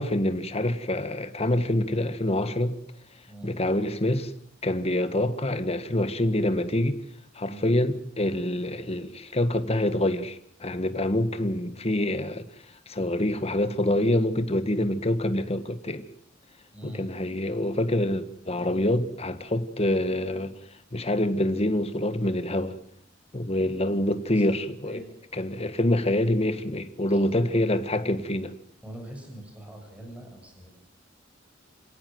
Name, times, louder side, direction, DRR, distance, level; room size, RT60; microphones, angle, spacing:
voice 1, 0.0-2.8 3.4-4.3 4.6-7.0 7.3-12.5 12.9-16.1 16.8-20.6 20.9-22.8 23.3-25.0 25.4-28.5, left 1 dB, 35° left, 1.6 m, -26 dB
voice 2, 7.5-7.8 16.7-17.0 23.6-24.0 24.3-24.4 24.9-25.1 27.1-27.4 28.8-30.7, right 1 dB, 5° right, 7.8 m, -43 dB
27.5 x 17.5 x 7.9 m
head